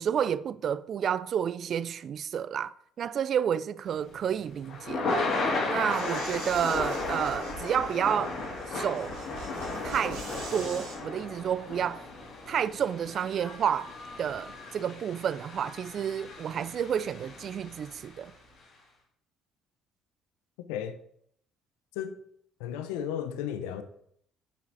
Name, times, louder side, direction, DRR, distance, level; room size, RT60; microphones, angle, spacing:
voice 1, 0.0-5.3 5.7-8.4 8.7-9.1 9.8-10.2 10.5-12.0 12.5-13.9 14.2-18.3, right 8 dB, 55° right, 0.3 m, -30 dB
Thunder / Rain, 3.9-18.2, left 3 dB, 60° left, 2.9 m, -35 dB
sound 1, 5.9-11.0, right 3 dB, 85° right, 2.0 m, -44 dB
voice 2, 20.7-21.0 21.9-22.2 22.6-23.8, left 9 dB, 85° left, 0.6 m, -34 dB
6.9 x 5.0 x 4.9 m
supercardioid pair, 70°, 0 cm